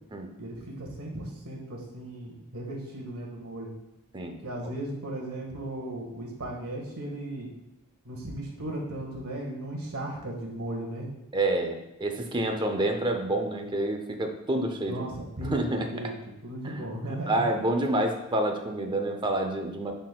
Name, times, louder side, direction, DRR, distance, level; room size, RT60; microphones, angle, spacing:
voice 1, 0.4-3.7 4.4-7.5 8.0-11.1 14.9-15.5 15.9-16.1 16.4-17.4, right 1 dB, 85° right, 0 dB, 1.6 m, -36 dB
voice 2, 11.3-15.1 15.4-15.9 16.6-19.9, right 1 dB, 20° right, 5 dB, 0.6 m, -28 dB
10.5 x 4.2 x 2.3 m, 0.92 s
head